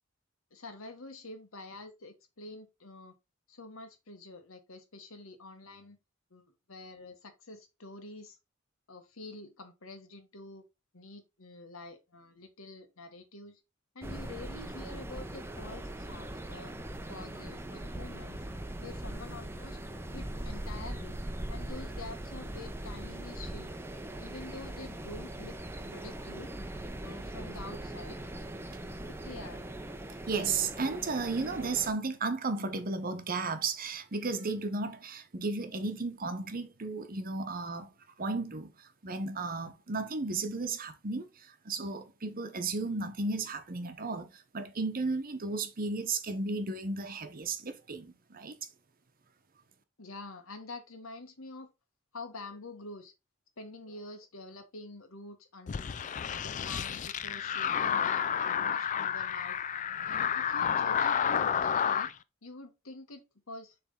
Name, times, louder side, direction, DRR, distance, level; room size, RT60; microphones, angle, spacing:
voice 1, 0.5-3.1 3.5-6.0 6.3-8.4 8.9-10.6 10.9-13.6 13.9-16.7 17.1-18.4 18.8-19.8 20.1-21.2 21.5-23.7 24.2-25.5 25.9-26.5 27.0-28.2 29.1-29.6 50.0-51.7 52.1-53.1 53.6-56.0 56.3-59.6 60.0-62.1 62.4-63.2 63.5-63.8, left 2 dB, 85° left, 1.5 m, -47 dB
sound 1, 14.0-31.9, right 1 dB, 10° right, 0.6 m, -41 dB
voice 2, 30.3-37.9 38.2-38.7 39.0-41.3 41.6-48.5, right 3 dB, 45° right, 0.9 m, -34 dB
sound 2, 55.7-62.1, left 8 dB, 35° left, 0.4 m, -30 dB
7.2 x 3.4 x 3.8 m
head